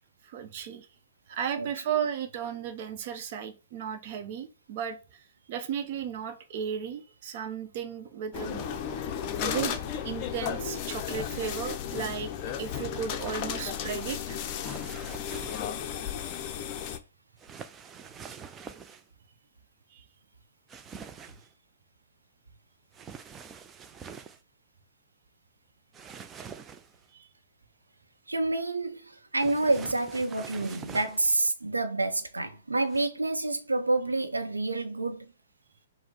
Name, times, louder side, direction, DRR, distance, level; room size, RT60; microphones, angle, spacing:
voice 1, 0.2-0.9 1.3-5.2 5.5-8.6 9.4-9.8 10.0-12.3 12.6-14.4 19.9-20.0 27.2-27.3, right 8 dB, 45° right, 0.7 m, -34 dB
sound 1, 8.3-17.0, left 8 dB, 35° left, 0.5 m, -34 dB
sound 2, 14.6-15.8 17.4-19.0 20.7-21.5 22.9-24.4 25.9-27.0 29.4-31.3 32.9-33.1, right 6 dB, 20° right, 0.4 m, -45 dB
voice 2, 28.3-35.3, right 2 dB, 85° right, 0.6 m, -28 dB
4.7 x 2.0 x 3.7 m
figure-of-eight pair, 120°, 0 cm